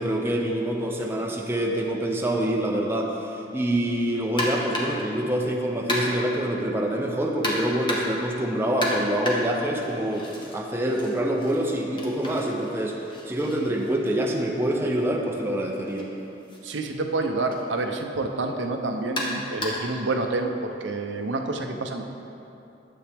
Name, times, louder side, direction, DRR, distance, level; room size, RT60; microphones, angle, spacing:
voice 1, 0.0-16.1, right 1 dB, 15° right, 0 dB, 0.6 m, -26 dB
sound 1, 4.4-5.1 5.9-6.4 7.4-8.3 8.8-10.6 10.9-14.8 15.8-16.0 16.5-16.6 17.5-17.6 19.2-20.0, left 1 dB, 25° left, 1.3 m, -31 dB
voice 2, 16.6-22.1, right 2 dB, 80° right, 4 dB, 0.8 m, -28 dB
11.5 x 7.8 x 3.5 m, 2.8 s
head